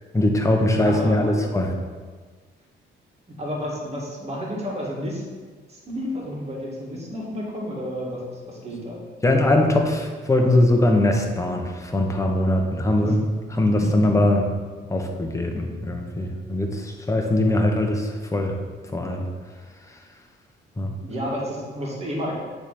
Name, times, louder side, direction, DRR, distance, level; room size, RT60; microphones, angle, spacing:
voice 1, 0.1-1.7 9.2-14.5 14.9-18.6 18.9-19.3 20.8-20.9, left 1 dB, 15° left, 2 dB, 1.0 m, -21 dB
voice 2, 0.8-1.5 3.3-5.2 5.7-8.2 8.5-9.0 13.0-13.1 13.6-13.8 21.0-22.3, equal, 30° right, -3 dB, 2.1 m, -31 dB
9.4 x 3.6 x 4.2 m, 1.5 s
cardioid pair, 90°, 20 cm